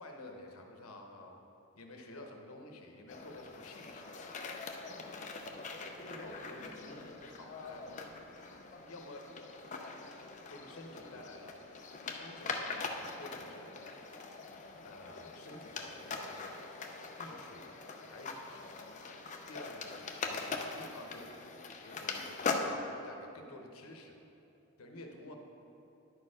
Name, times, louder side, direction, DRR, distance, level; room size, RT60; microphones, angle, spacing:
voice 1, 0.0-1.4 1.8-4.1 6.0-8.0 8.9-9.3 10.5-11.6 12.1-13.7 14.8-16.6 17.2-17.7 18.1-18.6 19.5-19.9 20.3-21.3 21.8-24.2 24.8-25.4, left 1 dB, 75° left, 2 dB, 0.9 m, -50 dB
sound 1, 3.1-22.8, left 4 dB, 35° left, 0.5 m, -42 dB
10.5 x 4.4 x 4.9 m, 2.9 s
head